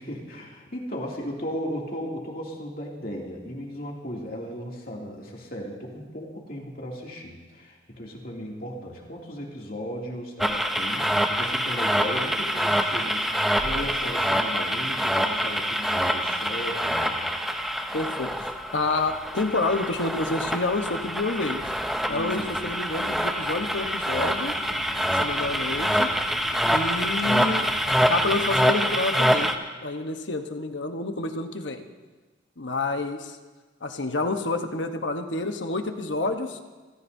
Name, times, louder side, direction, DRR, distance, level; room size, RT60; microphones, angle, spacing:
voice 1, 0.0-17.3 22.1-22.6, equal, 50° left, -2 dB, 2.6 m, -36 dB
sound 1, 10.4-29.5, equal, ahead, 0.7 m, -26 dB
voice 2, 17.9-21.6 22.1-24.6 25.1-26.1 26.7-27.7 28.1-29.5 29.8-31.8 32.6-33.4 33.8-36.6, left 2 dB, 80° left, 6 dB, 1.1 m, -28 dB
sound 2, 18.8-28.7, right 1 dB, 65° right, 2.1 m, -46 dB
28.0 x 14.5 x 2.7 m, 1.3 s
head